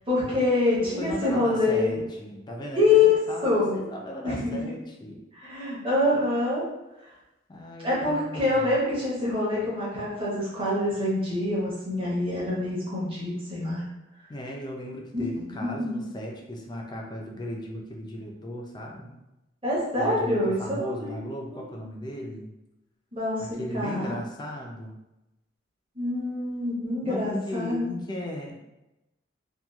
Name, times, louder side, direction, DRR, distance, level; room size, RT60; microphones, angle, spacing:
voice 1, 0.1-1.9 2.7-3.2 3.4-3.8 4.2-4.6 5.3-6.6 7.8-13.8 15.1-16.1 19.6-21.2 21.5-21.7 23.1-23.4 23.7-24.1 25.9-27.8, left 2 dB, 30° right, -8 dB, 0.9 m, -25 dB
voice 2, 0.8-3.0 3.3-5.2 7.5-8.8 14.3-19.2 20.0-22.5 23.4-25.0 27.0-28.6, equal, 25° left, 0 dB, 0.4 m, -36 dB
2.8 x 2.2 x 2.3 m, 0.97 s
head